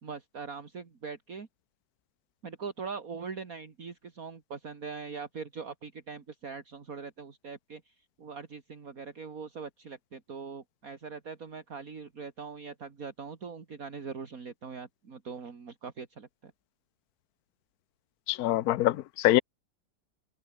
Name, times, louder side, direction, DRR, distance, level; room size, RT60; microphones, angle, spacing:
voice 1, 0.0-1.5 2.4-7.9 8.2-16.5, right 5 dB, 50° right, 2.6 m, -42 dB
voice 2, 18.3-19.4, left 15 dB, 65° left, 1.1 m, -24 dB
omnidirectional pair, 1.9 m